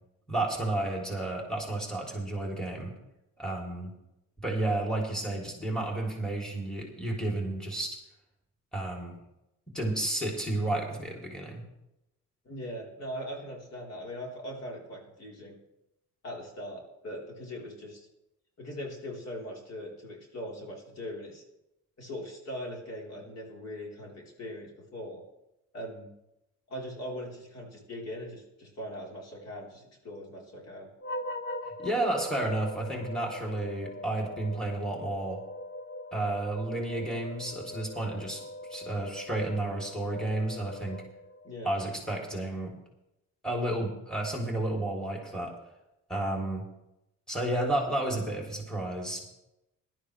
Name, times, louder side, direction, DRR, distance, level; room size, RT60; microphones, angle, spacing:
voice 1, 0.3-2.9 3.4-3.9 4.4-8.0 8.7-9.2 9.7-11.6 31.8-35.4 36.1-38.4 38.7-41.0 41.6-42.7 43.4-45.5 46.1-46.7 47.3-49.3, right 2 dB, ahead, 0 dB, 3.3 m, -31 dB
voice 2, 12.4-15.6 16.2-18.1 18.6-21.4 22.0-25.2 25.7-26.1 26.7-30.9 41.4-41.7, equal, 55° left, -2 dB, 4.2 m, -40 dB
sound 1, 31.0-41.6, left 2 dB, 40° left, 1.0 m, -41 dB
18.0 x 12.0 x 3.4 m, 0.89 s
cardioid pair, 90°, 30 cm